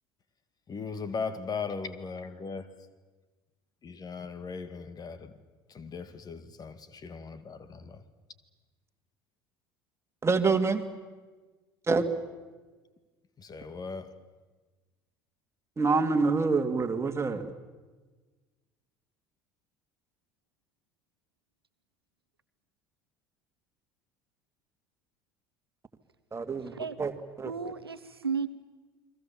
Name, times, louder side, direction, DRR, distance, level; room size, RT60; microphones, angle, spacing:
voice 1, 0.7-2.9 3.8-5.4 5.7-8.0 13.4-14.2, left 5 dB, 30° left, 1.9 m, -38 dB
voice 2, 10.2-10.8 11.9-12.0 15.8-17.5 26.3-27.1 27.4-27.5, right 4 dB, 20° right, 2.3 m, -26 dB
voice 3, 27.4-28.5, right 5 dB, 90° right, 0.9 m, -33 dB
30.0 x 22.0 x 7.3 m
figure-of-eight pair, 65°, 12 cm